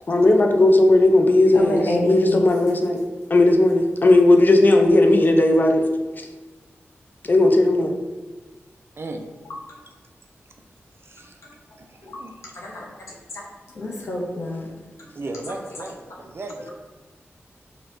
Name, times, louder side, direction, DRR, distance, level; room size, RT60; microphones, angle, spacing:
voice 1, 0.1-3.0 3.3-5.8 6.2-6.3 7.2-8.0, left 2 dB, 45° left, 3 dB, 0.5 m, -16 dB
voice 2, 1.5-2.4 12.0-12.2 12.5-12.9 13.7-14.7, left 1 dB, 85° left, -3 dB, 0.8 m, -27 dB
voice 3, 11.0-11.4 11.8-12.5 15.2-16.7, right 2 dB, 60° right, 3 dB, 0.4 m, -36 dB
2.9 x 2.7 x 3.1 m, 1.2 s
cardioid pair, 50°, 5 cm